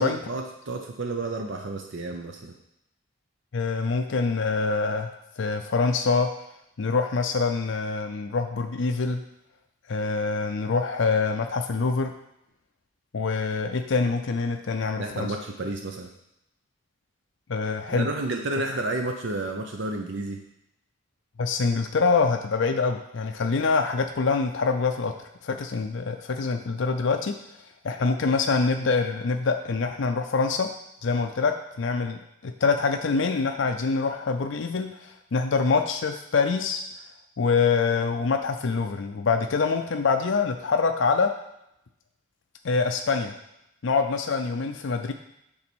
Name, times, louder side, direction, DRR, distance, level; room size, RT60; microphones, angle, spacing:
voice 1, 0.0-2.5 15.0-16.1 17.9-20.4, right 2 dB, 60° right, 3 dB, 0.7 m, -31 dB
voice 2, 3.5-5.1 5.4-6.3 6.8-9.2 9.9-12.1 13.1-15.3 17.5-18.1 21.4-25.1 25.4-27.3 27.8-30.7 31.0-36.8 37.4-41.3 42.6-43.3 43.8-45.1, left 4 dB, 65° left, 5 dB, 0.5 m, -25 dB
8.6 x 4.0 x 6.1 m, 0.83 s
head